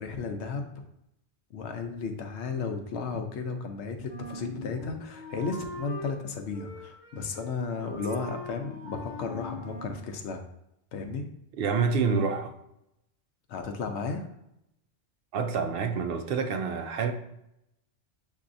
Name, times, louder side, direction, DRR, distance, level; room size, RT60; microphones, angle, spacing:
voice 1, 0.0-0.7 1.5-10.4 10.9-11.3 13.5-14.3, left 4 dB, 75° left, 0.9 m, -34 dB
Wind instrument woodwind instrument, 4.1-6.2 6.5-7.6 7.8-10.0, equal, 40° right, 1.6 m, -41 dB
voice 2, 11.6-12.5 15.3-17.1, right 5 dB, 65° right, 0.7 m, -27 dB
6.9 x 2.7 x 2.5 m
omnidirectional pair, 1.2 m